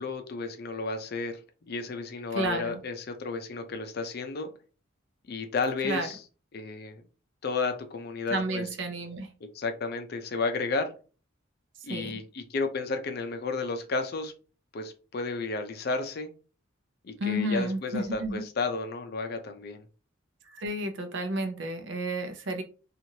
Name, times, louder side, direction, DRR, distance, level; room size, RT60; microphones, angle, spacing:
voice 1, 0.0-4.5 5.3-6.2 6.5-7.0 7.4-8.6 9.5-10.9 11.8-14.3 14.7-16.3 17.0-19.9, left 3 dB, 50° left, 6 dB, 0.4 m, -32 dB
voice 2, 2.3-2.8 5.8-6.1 8.3-9.3 11.9-12.1 17.2-18.4 20.5-22.6, right 1 dB, 65° right, 6 dB, 0.6 m, -31 dB
3.0 x 2.4 x 2.7 m, 0.35 s
head